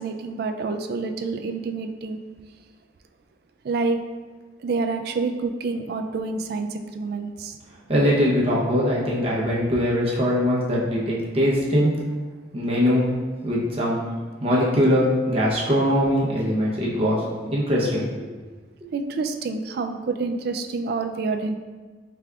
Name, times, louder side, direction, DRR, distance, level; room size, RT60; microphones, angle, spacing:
voice 1, 0.0-2.2 3.6-4.0 4.6-7.6 18.9-21.5, right 4 dB, 60° right, 6 dB, 0.3 m, -27 dB
voice 2, 7.9-11.9 12.5-13.1 13.4-14.0 14.4-17.2 17.5-18.0, equal, 30° right, -5 dB, 0.8 m, -21 dB
5.0 x 3.3 x 2.3 m, 1.4 s
head